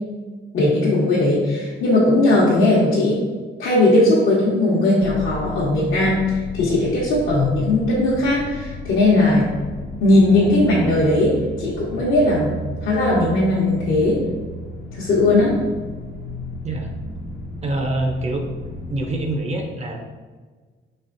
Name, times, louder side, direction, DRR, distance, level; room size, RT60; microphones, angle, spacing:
voice 1, 0.5-3.2 3.6-9.5 10.0-12.5 12.8-14.2 14.9-15.5, left 2 dB, 70° left, -8 dB, 0.9 m, -18 dB
sound 1, 5.0-19.2, left 1 dB, 45° left, 0.5 m, -34 dB
voice 2, 17.6-18.5 18.9-20.0, right 2 dB, 30° right, 3 dB, 0.5 m, -25 dB
4.2 x 3.3 x 2.5 m, 1.4 s
cardioid pair, 105°, 21 cm